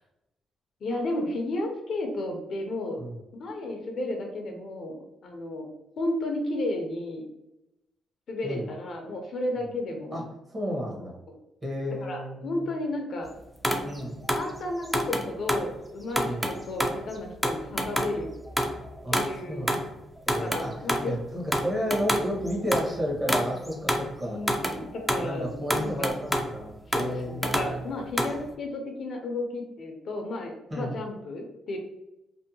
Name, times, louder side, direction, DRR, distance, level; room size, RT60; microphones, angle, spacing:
voice 1, 0.8-3.0 3.4-5.0 5.2-5.7 6.0-7.2 8.3-10.2 12.0-13.3 14.3-18.3 19.1-19.6 20.4-21.1 24.2-26.2 26.9-31.8, left 1 dB, 55° left, 3 dB, 0.5 m, -33 dB
voice 2, 10.5-11.2 11.6-12.7 13.8-14.2 16.2-16.5 19.0-19.2 19.5-19.9 20.3-24.7 25.2-27.9 30.7-31.0, equal, 30° right, -2 dB, 0.9 m, -32 dB
sound 1, 13.6-15.7 16.1-19.4 19.7-19.9 20.2-21.1 21.5-22.9 23.3-24.1 24.4-25.3 25.7-26.5 26.9-28.4, equal, ahead, 0.4 m, -28 dB
2.6 x 2.1 x 2.7 m, 0.91 s
cardioid pair, 90°, 0 cm